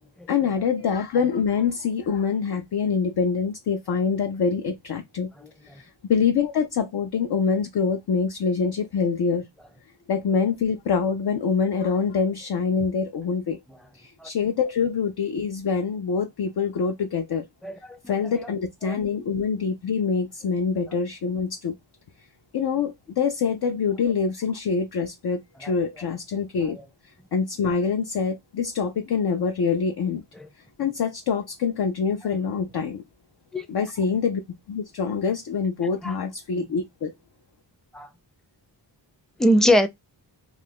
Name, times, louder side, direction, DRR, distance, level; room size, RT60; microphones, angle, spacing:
voice 1, 0.3-5.3 5.7-9.5 10.1-13.6 14.0-17.5 18.1-21.8 22.5-26.8 27.3-30.2 30.8-33.0 33.7-34.4 34.7-37.1, left 6 dB, 60° left, 0.5 m, -25 dB
voice 2, 5.4-5.8 14.2-14.3 17.6-18.2 18.4-18.5 18.9-19.0 25.6-25.7 30.4-30.5 33.5-33.7 36.0-36.1 36.5-36.6 37.9-38.1 39.4-39.9, equal, ahead, 0.5 m, -23 dB
2.5 x 2.3 x 3.5 m
cardioid pair, 55°, 45 cm